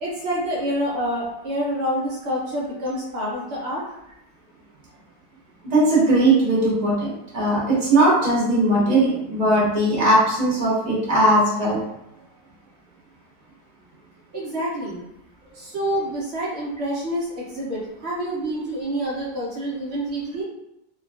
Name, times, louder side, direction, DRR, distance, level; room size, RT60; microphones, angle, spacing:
voice 1, 0.0-3.8 14.3-15.0 15.5-20.4, equal, 85° right, -5 dB, 0.5 m, -27 dB
voice 2, 5.6-11.8, right 1 dB, 30° right, -6 dB, 0.9 m, -19 dB
3.3 x 2.2 x 2.3 m, 0.83 s
omnidirectional pair, 1.9 m